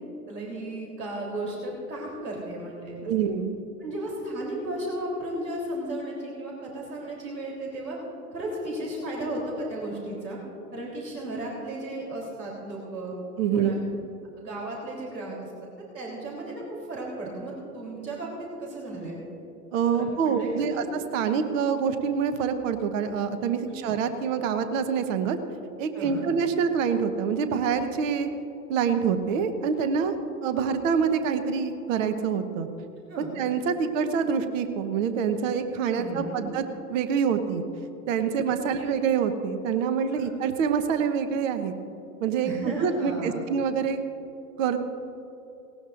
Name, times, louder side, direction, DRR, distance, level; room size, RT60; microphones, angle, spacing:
voice 1, 0.3-3.3 3.8-8.0 8.3-10.4 10.7-13.1 13.5-13.8 14.4-15.5 15.9-19.2 19.9-20.8 23.6-23.9 25.9-26.3 33.1-33.3 35.9-36.4 38.7-38.8 40.1-40.3 42.4-43.4, right 1 dB, 85° right, -3 dB, 3.7 m, -35 dB
voice 2, 3.0-3.6 13.4-13.8 19.7-20.8 21.1-25.4 25.8-28.3 28.7-30.2 30.4-32.7 33.2-36.6 36.9-37.6 38.1-41.7 42.2-44.0 44.6-44.8, right 6 dB, 50° right, 8 dB, 1.2 m, -26 dB
18.0 x 18.0 x 2.6 m, 2.9 s
hypercardioid pair, 105°, 48 cm